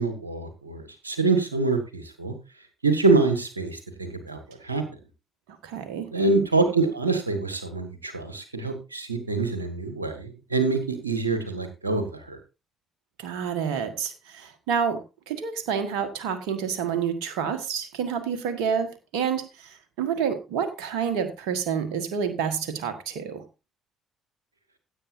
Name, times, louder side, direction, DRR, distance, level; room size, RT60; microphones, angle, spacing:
voice 1, 0.0-2.3 2.8-4.8 6.1-12.4, right 3 dB, 85° right, 8 dB, 1.5 m, -25 dB
voice 2, 5.6-6.1 13.2-23.4, right 7 dB, 65° right, 9 dB, 1.5 m, -28 dB
16.0 x 8.4 x 2.6 m, 0.28 s
figure-of-eight pair, 45°, 0 cm